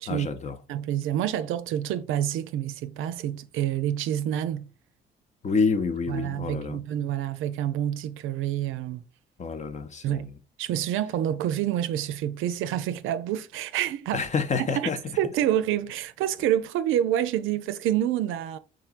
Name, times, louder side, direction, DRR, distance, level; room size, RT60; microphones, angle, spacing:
voice 1, 0.1-0.6 5.4-6.8 9.4-10.4 14.1-15.0, left 5 dB, 35° left, 0.6 m, -28 dB
voice 2, 0.7-4.7 6.1-9.0 10.0-10.3 10.6-14.3 14.8-14.9 15.2-18.6, right 11 dB, 85° right, 0.5 m, -27 dB
4.5 x 3.8 x 2.4 m
cardioid pair, 90°, 20 cm